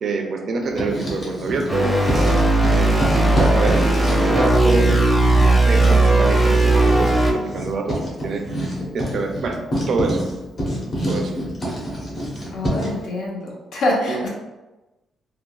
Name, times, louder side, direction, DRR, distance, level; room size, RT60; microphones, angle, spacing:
voice 1, 0.0-2.4 2.7-10.3 11.0-11.4 11.7-11.9 14.1-14.2, right 3 dB, 55° right, 3 dB, 0.4 m, -26 dB
Writing, 0.6-1.7 2.0-13.0, equal, 35° left, 1.0 m, -27 dB
sound 1, 1.7-7.3, right 2 dB, 5° left, 0.7 m, -17 dB
voice 2, 12.5-14.3, left 1 dB, 75° left, -3 dB, 0.8 m, -25 dB
3.5 x 2.3 x 2.3 m, 1.1 s
cardioid pair, 120°, 0 cm